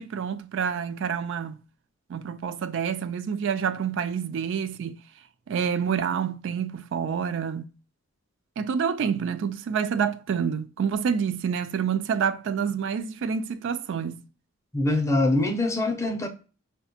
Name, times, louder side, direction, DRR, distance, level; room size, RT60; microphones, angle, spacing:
voice 1, 0.0-1.6 2.1-5.0 5.5-7.6 8.6-14.2, right 7 dB, 65° right, 0.3 m, -28 dB
voice 2, 14.7-16.3, left 2 dB, 15° left, 0.5 m, -23 dB
4.8 x 2.2 x 2.7 m
head